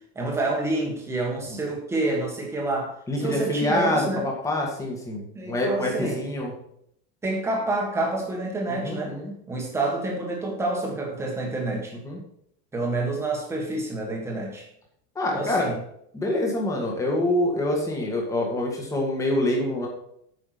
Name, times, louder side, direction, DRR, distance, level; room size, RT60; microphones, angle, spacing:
voice 1, 0.2-4.3 5.4-6.2 7.2-9.1 9.5-11.9 12.7-14.7 15.3-15.8, right 2 dB, 10° right, 0 dB, 1.7 m, -28 dB
voice 2, 3.1-6.5 8.7-9.3 12.0-12.2 15.2-15.7 16.1-19.9, left 1 dB, 10° left, 0 dB, 1.9 m, -26 dB
9.1 x 6.1 x 6.0 m, 0.71 s
supercardioid pair, 180°, 32 cm